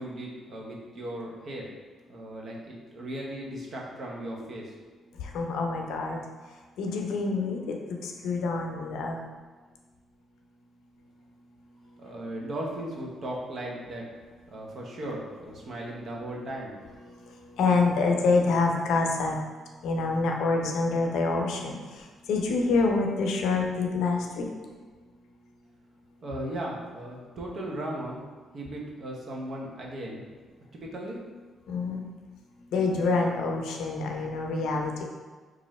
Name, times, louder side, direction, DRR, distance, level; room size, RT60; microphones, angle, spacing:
voice 1, 0.0-1.7 2.1-4.8 12.0-14.0 14.5-16.8 26.2-28.2 28.5-30.2 30.7-31.2, right 1 dB, 55° right, -2 dB, 0.8 m, -37 dB
voice 2, 5.2-6.2 6.8-7.7 8.0-9.2 17.6-19.4 19.8-22.0 22.3-24.5 31.7-32.0 32.7-35.0, left 3 dB, 80° left, 1 dB, 0.5 m, -26 dB
3.0 x 2.5 x 4.1 m, 1.4 s
cardioid pair, 90°, 0 cm